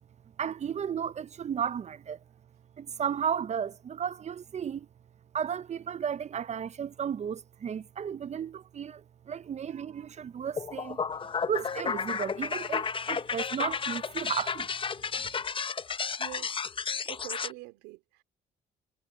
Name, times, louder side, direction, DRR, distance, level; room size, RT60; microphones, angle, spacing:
voice 1, 0.4-2.2 2.8-4.9 5.3-11.0 11.5-14.7 15.1-15.3, right 8 dB, 40° right, 0.6 m, -34 dB
sound 1, 10.6-17.5, left 6 dB, 30° left, 0.7 m, -32 dB
voice 2, 16.2-16.6 17.0-18.2, right 20 dB, 90° right, 3.2 m, -45 dB
supercardioid pair, 65°, 17 cm